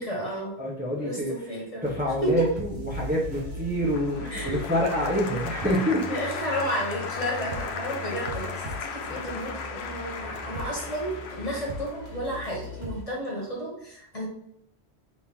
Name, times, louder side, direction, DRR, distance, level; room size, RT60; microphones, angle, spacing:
voice 1, 0.0-0.5 0.9-2.0 2.4-2.5 4.3-4.6 6.1-8.6 8.9-14.3, right 1 dB, 35° left, -3 dB, 1.4 m, -32 dB
voice 2, 0.6-1.4 1.8-6.2 9.1-9.2 10.4-10.5, equal, 10° right, -4 dB, 0.8 m, -27 dB
sound 1, 1.8-13.0, left 1 dB, 70° right, 1.4 m, -39 dB
Applause, 3.9-13.0, left 5 dB, 85° left, 0.9 m, -36 dB
4.2 x 2.9 x 3.6 m, 0.77 s
omnidirectional pair, 1.1 m